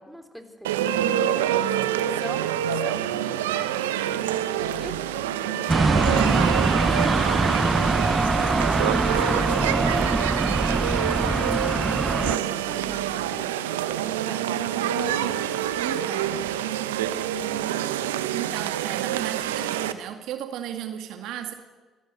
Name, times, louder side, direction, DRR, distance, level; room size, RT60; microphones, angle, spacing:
voice 1, 0.0-17.0, equal, 5° right, 5 dB, 3.9 m, -44 dB
sound 1, 0.6-19.9, right 11 dB, 85° right, 1.0 m, -26 dB
sound 2, 4.2-5.3 5.8-6.9 7.4-8.5 9.0-10.1 10.6-11.7 12.2-13.3, right 7 dB, 75° left, 6.7 m, -50 dB
sound 3, 5.7-12.4, right 3 dB, 25° right, 0.8 m, -23 dB
voice 2, 15.7-16.4 18.3-21.5, right 10 dB, 65° right, 7 dB, 2.0 m, -35 dB
25.0 x 18.0 x 8.3 m, 1.3 s
hypercardioid pair, 50°, 0 cm